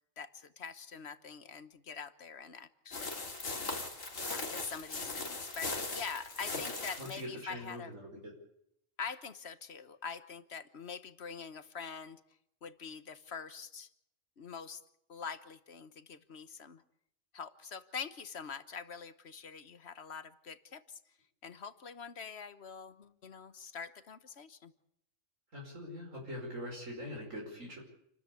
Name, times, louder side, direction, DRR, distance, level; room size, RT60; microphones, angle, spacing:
voice 1, 0.2-3.2 4.2-7.9 9.0-12.2 12.6-13.9 14.4-14.8 15.1-16.8 17.3-21.0 21.4-24.7, left 6 dB, 55° left, 12 dB, 1.4 m, -44 dB
sound 1, 2.9-7.2, left 3 dB, 90° left, 3.0 m, -39 dB
voice 2, 7.0-8.3 25.5-27.8, equal, 80° right, -1 dB, 5.8 m, -43 dB
29.0 x 13.0 x 8.3 m, 0.76 s
omnidirectional pair, 1.3 m